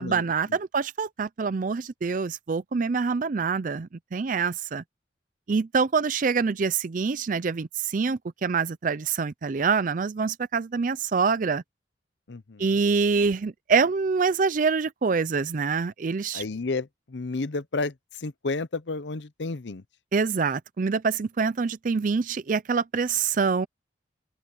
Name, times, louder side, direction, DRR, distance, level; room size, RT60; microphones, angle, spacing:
voice 1, 0.0-4.8 5.5-11.6 12.6-16.4 20.1-23.7, right 5 dB, 45° right, 0.4 m, -25 dB
voice 2, 12.3-12.7 16.3-17.9 18.2-19.8, left 3 dB, 80° left, 0.8 m, -31 dB
open air
head